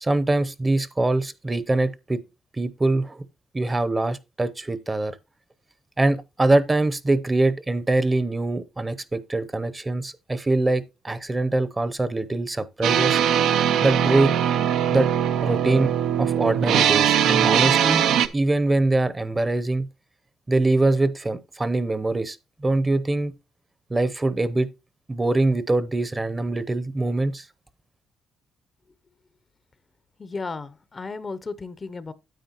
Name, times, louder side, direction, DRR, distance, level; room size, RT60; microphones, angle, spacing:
voice 1, 0.0-2.2 2.5-3.3 3.5-5.2 6.0-13.2 13.8-14.3 14.9-15.1 15.4-15.9 16.2-18.1 18.3-19.9 20.5-23.3 23.9-24.7 25.1-27.4, right 2 dB, 20° right, 0.7 m, -23 dB
sound 1, 12.8-18.3, right 9 dB, 85° right, 0.7 m, -21 dB
voice 2, 30.2-32.1, left 4 dB, 30° left, 0.6 m, -34 dB
9.2 x 8.5 x 3.0 m
cardioid pair, 90°, 0 cm